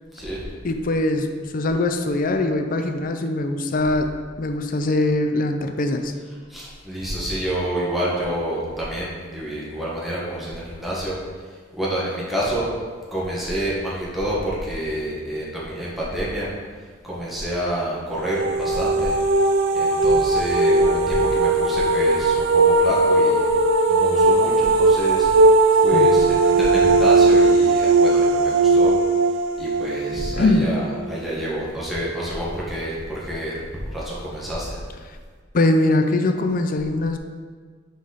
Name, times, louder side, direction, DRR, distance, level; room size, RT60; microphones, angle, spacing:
voice 1, 0.1-0.4 6.5-11.2 11.7-12.7 13.1-16.5 17.0-19.1 19.7-23.5 23.9-25.3 25.8-29.0 29.6-33.6 33.9-34.8, right 1 dB, ahead, -7 dB, 1.4 m, -28 dB
voice 2, 0.6-4.1 4.4-6.1 25.9-26.1 30.4-30.7 35.1-35.2 35.5-37.2, left 2 dB, 45° left, 6 dB, 0.5 m, -22 dB
sound 1, 18.1-31.0, right 3 dB, 85° right, 0.6 m, -18 dB
8.0 x 4.1 x 4.0 m, 1.5 s
head